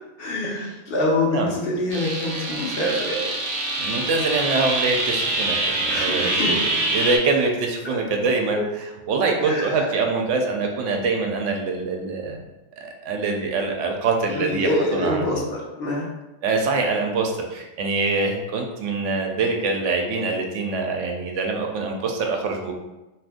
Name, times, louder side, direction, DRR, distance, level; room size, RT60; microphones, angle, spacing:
voice 1, 0.2-3.3 5.9-6.6 7.8-8.0 8.5-8.7 9.4-9.9 14.3-16.1, left 1 dB, 55° left, -3 dB, 0.8 m, -25 dB
sound 1, 1.9-7.2, right 2 dB, 55° right, 0.8 m, -25 dB
voice 2, 3.8-12.4 12.8-15.4 16.4-22.7, right 3 dB, 85° right, 2 dB, 0.9 m, -24 dB
2.6 x 2.5 x 3.5 m, 1.0 s
omnidirectional pair, 1.2 m